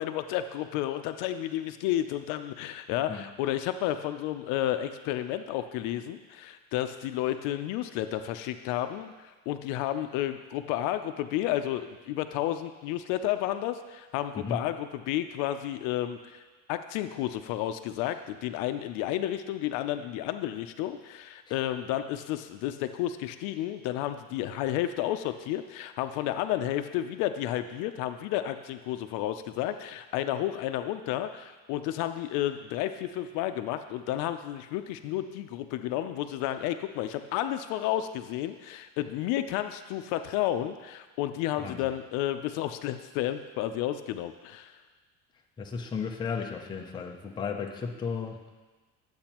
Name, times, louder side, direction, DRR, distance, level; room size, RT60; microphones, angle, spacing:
voice 1, 0.0-16.4 16.7-44.8, left 12 dB, 75° left, 9 dB, 0.5 m, -31 dB
voice 2, 45.6-48.5, left 5 dB, 15° left, 1 dB, 0.5 m, -34 dB
10.5 x 7.9 x 2.9 m, 1.3 s
cardioid pair, 175°, 31 cm